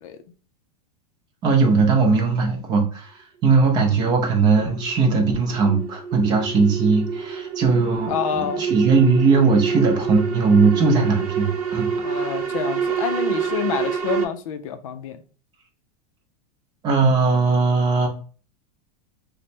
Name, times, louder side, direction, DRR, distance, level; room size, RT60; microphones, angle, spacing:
voice 1, 1.4-12.4 16.8-18.1, right 4 dB, 20° right, 0.5 m, -19 dB
sound 1, 3.7-14.2, right 6 dB, 70° right, 0.7 m, -27 dB
voice 2, 8.1-8.6 12.0-15.2, left 8 dB, 60° left, 0.4 m, -28 dB
3.1 x 2.1 x 4.2 m
supercardioid pair, 170°, 19 cm